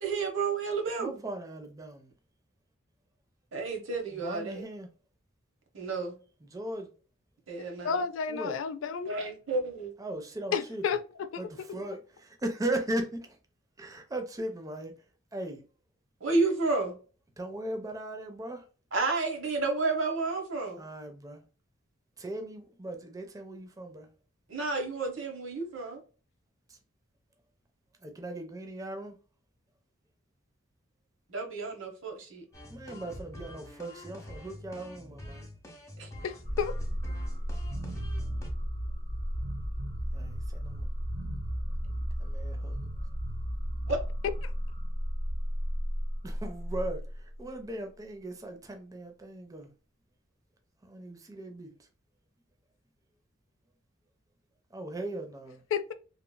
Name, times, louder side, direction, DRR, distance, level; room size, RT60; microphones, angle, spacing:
voice 1, 0.0-1.2 3.5-4.6 5.7-6.1 7.5-8.0 9.1-9.9 16.2-16.9 18.9-20.8 24.5-26.0 31.3-32.4 36.0-36.1 43.9-44.0, right 3 dB, 70° right, 1.0 m, -31 dB
voice 2, 1.0-2.1 4.1-4.9 6.5-6.9 8.3-8.6 10.0-10.8 11.4-13.4 13.8-14.9 15.3-15.6 17.4-18.6 20.8-21.4 22.2-24.1 26.7-26.8 28.0-29.2 32.7-35.5 40.1-40.9 42.2-43.0 46.2-49.7 50.8-51.7 54.7-55.6, right 1 dB, 15° right, 0.4 m, -38 dB
voice 3, 7.8-9.1 10.5-11.0 11.3-11.4 36.2-36.7 44.4-44.5 55.7-55.9, left 6 dB, 70° left, 0.3 m, -31 dB
sound 1, 32.5-38.5, left 1 dB, 15° left, 0.7 m, -46 dB
sound 2, 36.4-47.3, equal, 45° right, 1.0 m, -34 dB
2.9 x 2.5 x 2.2 m
head